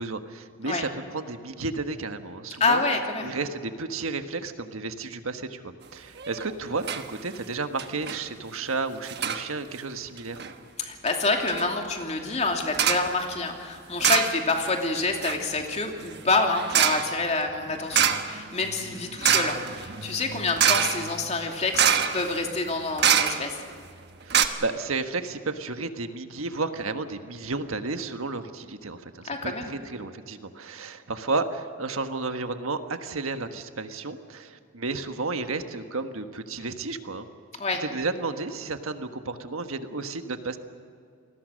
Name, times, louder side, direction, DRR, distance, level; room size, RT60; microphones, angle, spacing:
voice 1, 0.0-2.8 3.2-10.4 24.2-37.3 37.8-40.6, right 3 dB, 80° right, 8 dB, 1.5 m, -32 dB
voice 2, 2.6-3.3 10.8-23.6 29.3-29.7 37.6-37.8, left 3 dB, 30° left, 2 dB, 2.7 m, -27 dB
sound 1, 6.2-6.5 6.8-7.1 7.3-7.4 7.8-8.2 9.0-9.4 10.2-10.5 11.1-11.2 11.5-11.7 12.7-13.1 14.0-14.7 14.9-23.7 24.0-24.1 24.3-24.4, right 8 dB, 50° right, 1.3 m, -26 dB
28.5 x 20.5 x 6.4 m, 2.3 s
head